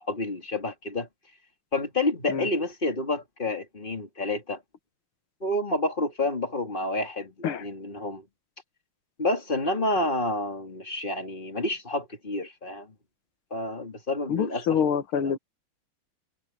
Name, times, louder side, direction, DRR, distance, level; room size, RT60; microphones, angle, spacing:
voice 1, 0.1-1.1 1.7-4.6 5.4-8.2 9.2-12.9 13.5-14.8 15.1-15.3, left 2 dB, 25° left, 2.8 m, -29 dB
voice 2, 14.3-15.4, left 7 dB, 75° left, 2.1 m, -26 dB
omnidirectional pair, 2.4 m